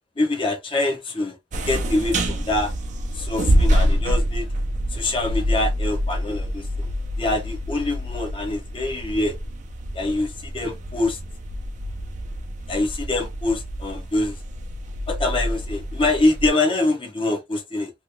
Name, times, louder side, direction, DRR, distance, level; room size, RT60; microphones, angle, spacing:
voice 1, 0.2-1.4 1.6-2.7 3.1-4.5 4.9-6.9 7.2-9.3 9.9-11.2 12.7-14.4 15.1-17.9, left 2 dB, 30° left, 0.9 m, -24 dB
sound 1, 1.5-16.5, equal, 45° right, 0.6 m, -26 dB
2.9 x 2.6 x 2.8 m
head